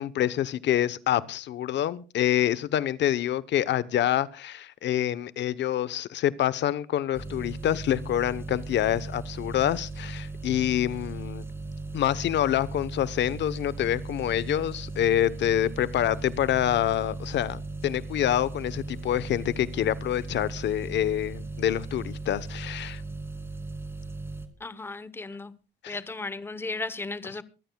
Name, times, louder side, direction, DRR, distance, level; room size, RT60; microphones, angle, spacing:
voice 1, 0.0-11.4 11.9-23.0 25.8-26.0, left 11 dB, 60° left, 0.9 m, -26 dB
sound 1, 7.1-24.5, right 3 dB, 10° right, 2.7 m, -37 dB
voice 2, 24.6-25.5 25.9-27.4, left 3 dB, 10° left, 0.9 m, -35 dB
23.5 x 15.0 x 2.3 m
cardioid pair, 145°, 20 cm